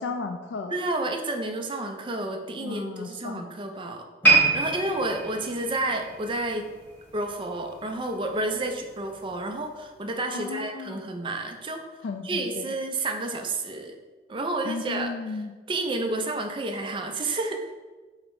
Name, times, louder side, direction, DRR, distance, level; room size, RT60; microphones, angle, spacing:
voice 1, 0.0-0.8 2.6-3.4 10.3-11.0 12.0-12.7 14.6-15.5, left 4 dB, 65° left, 5 dB, 0.3 m, -34 dB
voice 2, 0.7-6.7 7.1-11.8 12.2-14.0 14.3-15.1 15.7-17.7, right 2 dB, 25° right, 4 dB, 0.4 m, -30 dB
sound 1, 4.2-7.5 7.8-8.1 8.8-8.9, right 2 dB, 10° left, 1.1 m, -25 dB
4.9 x 2.1 x 4.6 m, 1.3 s
head